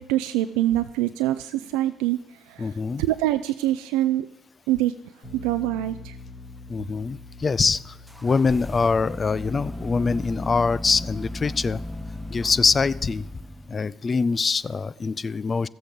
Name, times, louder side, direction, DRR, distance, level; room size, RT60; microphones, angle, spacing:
voice 1, 0.0-4.3 4.7-4.9 5.3-6.2, right 14 dB, 75° right, 10 dB, 0.3 m, -25 dB
voice 2, 2.6-3.0 6.7-11.8 12.3-13.3 13.7-15.7, left 4 dB, 35° left, 19 dB, 0.4 m, -24 dB
Bass guitar, 5.2-11.5, left 3 dB, 65° left, 5.0 m, -45 dB
sound 1, 8.1-14.0, left 1 dB, ahead, 0.9 m, -36 dB
13.5 x 7.7 x 5.2 m, 0.95 s
hypercardioid pair, 50°, 0 cm